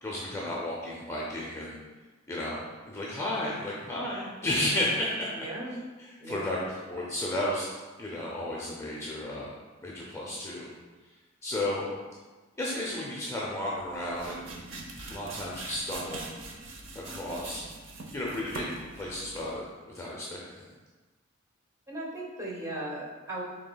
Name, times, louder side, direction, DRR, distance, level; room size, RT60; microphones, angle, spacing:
voice 1, 0.0-1.8 2.3-2.6 2.8-5.3 6.0-7.7 8.0-9.5 9.8-10.7 11.4-11.9 12.6-16.2 16.9-17.6 18.1-18.7 18.9-20.6, left 1 dB, 15° left, -5 dB, 0.5 m, -33 dB
voice 2, 5.4-5.8 6.2-6.6 21.9-23.4, right 1 dB, 15° right, -4 dB, 0.9 m, -37 dB
sound 1, 13.8-19.6, right 2 dB, 65° right, 0.7 m, -42 dB
6.6 x 3.3 x 2.3 m, 1.3 s
head